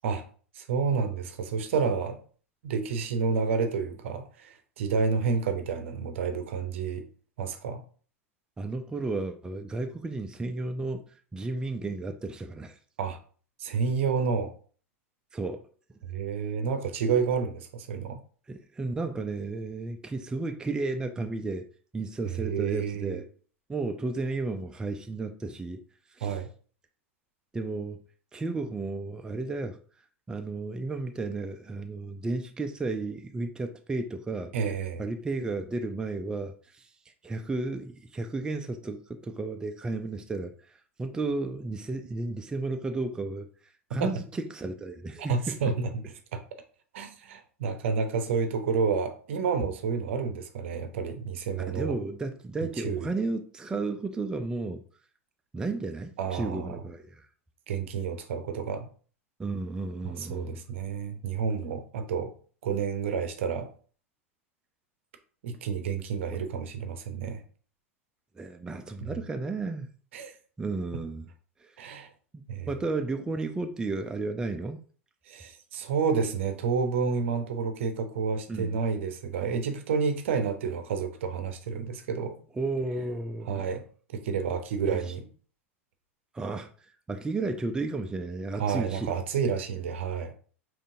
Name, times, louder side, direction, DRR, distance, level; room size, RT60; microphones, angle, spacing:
voice 1, 0.5-2.2 2.6-7.0 7.4-7.8 13.0-13.2 13.6-14.5 16.1-18.2 22.3-23.2 26.2-26.5 34.5-35.0 44.0-44.1 45.3-45.9 46.3-46.4 46.9-52.0 52.8-53.1 56.2-56.8 57.7-58.9 60.0-62.3 62.6-63.7 65.4-67.4 69.0-69.1 70.1-70.3 71.8-72.1 72.5-72.7 75.3-82.4 83.5-83.8 84.1-85.3 88.6-90.3, right 5 dB, 60° right, 0.7 m, -29 dB
voice 2, 8.6-12.8 15.3-15.6 18.5-21.7 21.9-23.3 23.7-25.8 26.2-26.4 27.5-28.0 28.3-29.8 30.3-34.5 35.0-36.9 37.2-43.5 43.9-45.7 51.7-54.8 55.5-57.3 59.4-60.6 68.4-69.9 70.6-71.3 71.6-71.7 72.7-74.8 78.5-78.8 82.6-83.7 84.8-85.1 86.3-86.7 87.1-89.1, right 3 dB, 10° right, 0.4 m, -33 dB
5.1 x 3.1 x 2.6 m
figure-of-eight pair, 85°, 7 cm